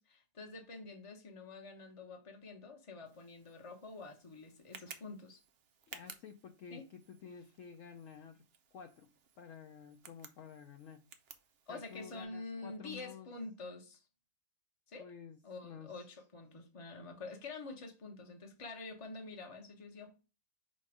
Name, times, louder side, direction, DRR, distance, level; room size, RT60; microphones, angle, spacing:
voice 1, 0.0-5.4 6.7-6.8 11.7-14.0 14.9-15.1 15.4-20.2, left 3 dB, 25° left, 0.8 m, -47 dB
Tick, 3.1-12.2, right 6 dB, 85° right, 0.5 m, -57 dB
voice 2, 5.9-8.4 8.7-9.1 9.4-11.0 11.7-13.3 15.0-16.0, left 7 dB, 70° left, 0.7 m, -52 dB
5.3 x 3.7 x 4.9 m
omnidirectional pair, 1.9 m